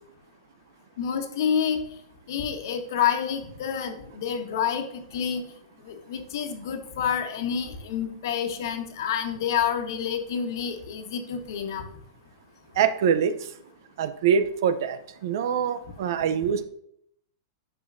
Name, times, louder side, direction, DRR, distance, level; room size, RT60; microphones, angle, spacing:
voice 1, 1.0-1.8 2.3-5.4 5.8-11.8, left 8 dB, 65° left, 6 dB, 1.3 m, -28 dB
voice 2, 12.8-13.4 14.0-16.6, right 7 dB, 65° right, 12 dB, 0.6 m, -24 dB
10.0 x 6.1 x 2.6 m, 0.70 s
supercardioid pair, 155°, 2 cm